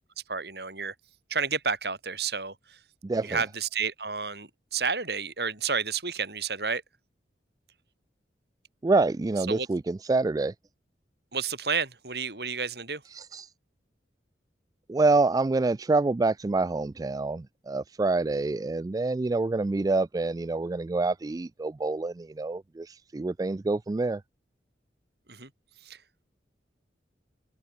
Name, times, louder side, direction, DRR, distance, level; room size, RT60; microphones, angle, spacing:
voice 1, 0.3-0.9 1.3-2.8 3.2-6.8 9.5-9.7 11.3-13.0 25.3-25.5 25.8-26.0, right 5 dB, 65° right, 6.2 m, -31 dB
voice 2, 3.0-3.4 8.8-10.5 13.1-13.5 14.9-24.2, right 3 dB, 20° right, 0.3 m, -27 dB
head